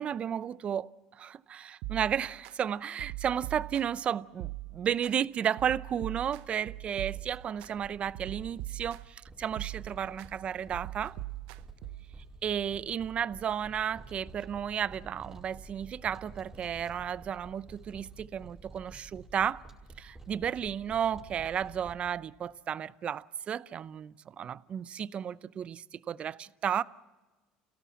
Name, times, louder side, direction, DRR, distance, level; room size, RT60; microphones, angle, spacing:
voice 1, 0.0-11.2 12.4-19.6 20.0-26.8, right 8 dB, 40° right, 0.7 m, -33 dB
sound 1, 1.8-2.5 3.0-4.1 4.4-5.1 5.6-7.7 8.1-9.2 9.6-10.3 10.7-12.1, right 20 dB, 75° right, 0.8 m, -41 dB
sound 2, 6.6-21.9, right 3 dB, 15° right, 4.8 m, -51 dB
29.0 x 17.0 x 7.4 m
supercardioid pair, 95°, 3 cm